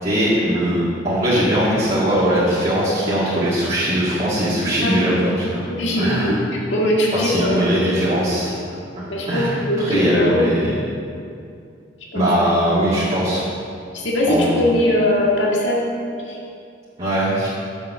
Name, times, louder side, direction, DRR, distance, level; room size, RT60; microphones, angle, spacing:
voice 1, 0.0-5.6 6.0-6.4 7.1-8.5 9.3-10.7 12.1-13.6 14.3-14.6 17.0-17.5, equal, 35° right, -10 dB, 1.9 m, -20 dB
voice 2, 4.8-5.1 5.7-7.6 9.1-10.5 12.1-12.3 13.9-15.9 16.2-16.4, left 1 dB, 75° left, -4 dB, 1.9 m, -20 dB
7.1 x 6.5 x 6.9 m, 2.5 s
head